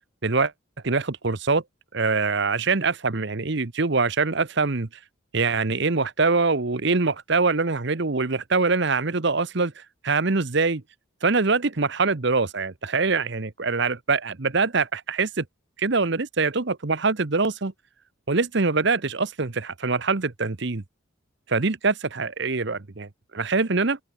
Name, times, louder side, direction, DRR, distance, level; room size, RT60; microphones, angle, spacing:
voice 1, 0.8-1.6 1.9-4.9 5.3-10.8 11.2-15.4 15.8-17.7 18.3-20.8 21.5-24.0, right 4 dB, 55° right, 1.0 m, -24 dB
head